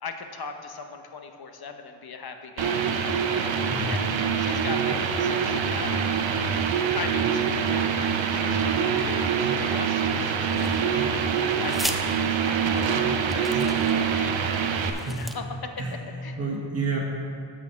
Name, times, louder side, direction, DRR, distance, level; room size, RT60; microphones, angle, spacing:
voice 1, 0.0-3.5 3.9-6.3 6.8-11.2 11.6-12.0 12.4-16.4, left 4 dB, 55° left, 6 dB, 1.0 m, -39 dB
sound 1, 2.6-14.9, right 6 dB, 80° right, 0.8 m, -25 dB
voice 2, 3.7-4.0 14.9-15.2 15.8-15.9 16.4-17.0, right 4 dB, 30° right, -3 dB, 1.6 m, -29 dB
sound 2, 10.6-11.1 11.6-12.0 12.8-12.9 13.3-14.1 14.7-15.4, equal, ahead, 0.5 m, -35 dB
8.5 x 6.4 x 5.7 m, 2.4 s
cardioid pair, 60°, 46 cm